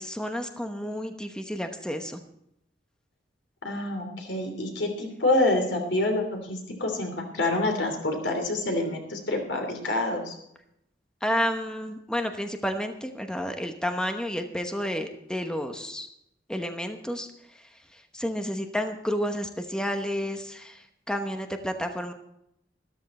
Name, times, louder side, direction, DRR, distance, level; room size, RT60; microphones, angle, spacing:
voice 1, 0.0-2.2 11.2-16.1 16.5-17.3 18.1-22.1, equal, 5° left, 6 dB, 1.0 m, -31 dB
voice 2, 3.6-10.4, left 2 dB, 90° left, 4 dB, 3.1 m, -27 dB
13.5 x 13.0 x 4.2 m, 0.77 s
head